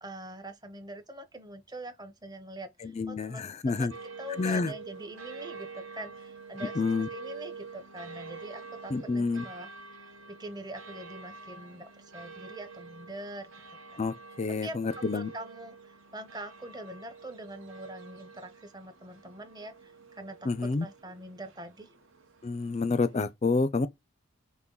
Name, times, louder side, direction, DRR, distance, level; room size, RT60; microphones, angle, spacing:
voice 1, 0.0-6.8 7.1-9.7 10.0-13.5 13.9-14.1 14.5-21.9, right 1 dB, 20° right, 0.8 m, -44 dB
voice 2, 2.8-3.9 4.4-4.7 6.8-7.1 8.9-9.4 14.0-15.3 20.4-20.9 22.4-23.9, left 4 dB, 30° left, 0.4 m, -29 dB
sound 1, 3.9-23.3, right 4 dB, 65° right, 1.0 m, -47 dB
5.8 x 2.2 x 3.8 m
head